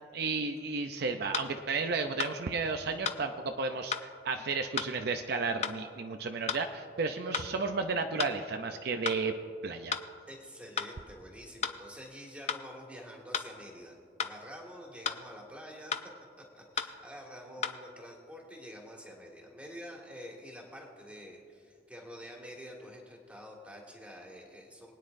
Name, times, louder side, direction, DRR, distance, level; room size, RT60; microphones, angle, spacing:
voice 1, 0.1-9.3 9.6-10.0, right 4 dB, 60° right, 6 dB, 0.5 m, -33 dB
sound 1, 0.6-0.7 1.3-1.5 2.2-2.4 3.0-3.2 3.9-4.1 4.8-4.9 5.6-5.8 6.5-6.6 7.3-7.5 8.2-8.4 9.1-9.2 9.9-10.1 10.8-10.9 11.6-11.8 12.5-12.6 13.3-13.5 14.2-14.4 15.0-15.2 15.9-16.1 16.8-16.9 17.6-17.8, left 6 dB, 35° left, 0.5 m, -33 dB
voice 2, 10.3-14.0 14.2-16.1 16.5-24.9, equal, 5° right, -1 dB, 1.8 m, -47 dB
23.0 x 9.4 x 2.6 m, 2.2 s
head